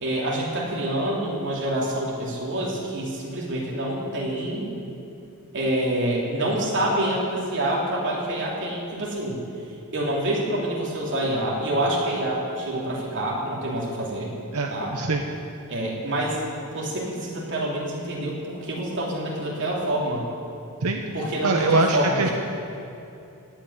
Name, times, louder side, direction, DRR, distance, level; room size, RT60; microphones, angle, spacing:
voice 1, 0.0-4.7 5.5-9.4 9.9-14.3 14.7-14.9 15.7-16.4 16.7-20.3 21.1-22.3, right 1 dB, 55° right, -4 dB, 3.1 m, -27 dB
voice 2, 14.5-15.2 20.8-21.0 21.4-22.3, right 3 dB, 80° right, 2 dB, 0.9 m, -23 dB
16.5 x 5.9 x 9.6 m, 2.7 s
head